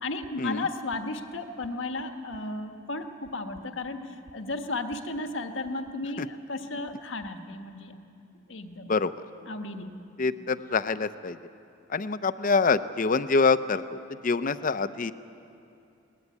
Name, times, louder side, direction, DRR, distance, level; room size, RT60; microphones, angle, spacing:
voice 1, 0.0-7.9 8.5-8.9 9.5-9.9, left 2 dB, 75° left, 6 dB, 1.5 m, -34 dB
voice 2, 10.2-11.4 11.9-15.1, left 4 dB, 45° left, 13 dB, 0.6 m, -25 dB
22.5 x 19.0 x 9.7 m, 2.6 s
head